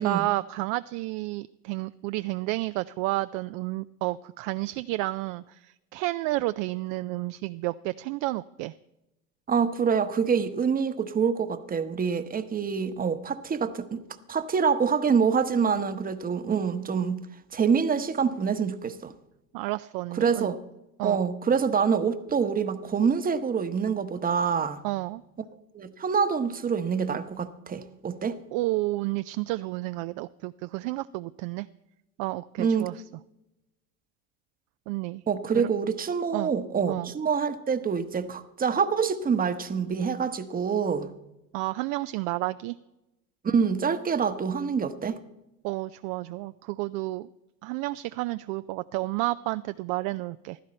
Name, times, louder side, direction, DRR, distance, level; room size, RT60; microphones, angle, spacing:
voice 1, 0.0-8.7 19.5-20.5 21.0-21.2 24.8-25.2 28.5-31.7 32.2-32.9 34.9-35.2 35.5-35.7 36.3-36.5 36.9-37.1 41.5-42.8 45.6-47.3 47.6-50.6, right 19 dB, 50° right, 0.4 m, -31 dB
voice 2, 9.5-14.0 14.3-17.2 17.5-19.1 20.2-20.6 21.0-24.8 25.7-28.4 32.6-32.9 35.3-41.1 43.4-45.2, right 6 dB, 20° right, 1.0 m, -26 dB
15.5 x 12.5 x 4.3 m
hypercardioid pair, 90°, 44 cm